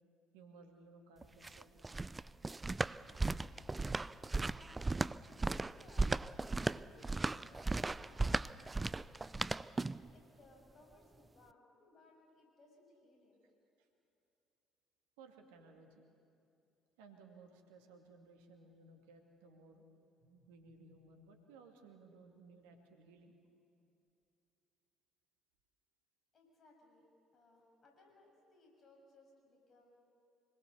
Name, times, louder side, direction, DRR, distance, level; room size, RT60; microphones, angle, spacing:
voice 1, 0.3-2.0 13.8-13.9 15.2-16.1 17.0-19.8 20.2-23.3, right 3 dB, 75° right, 4 dB, 2.3 m, -59 dB
sound 1, 1.2-10.1, right 3 dB, 20° right, 0.5 m, -36 dB
voice 2, 5.7-9.5 10.1-13.4 26.3-27.1 27.3-30.0, left 2 dB, 45° left, 1 dB, 7.1 m, -65 dB
26.0 x 21.5 x 6.9 m, 2.6 s
figure-of-eight pair, 50°, 0 cm